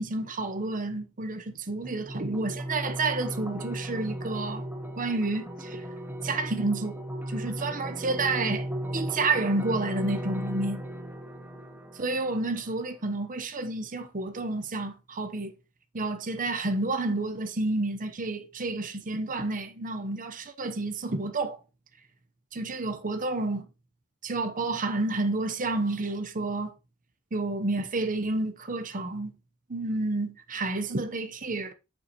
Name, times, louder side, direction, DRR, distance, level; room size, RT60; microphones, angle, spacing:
voice 1, 0.0-4.7 5.0-5.9 6.2-8.7 8.9-10.8 12.0-15.5 15.9-21.6 22.5-23.6 24.2-26.7 27.3-29.3 29.7-31.7, right 2 dB, 40° right, 0.9 m, -30 dB
sound 1, 1.8-12.8, equal, 10° right, 1.2 m, -36 dB
8.3 x 7.0 x 3.0 m
head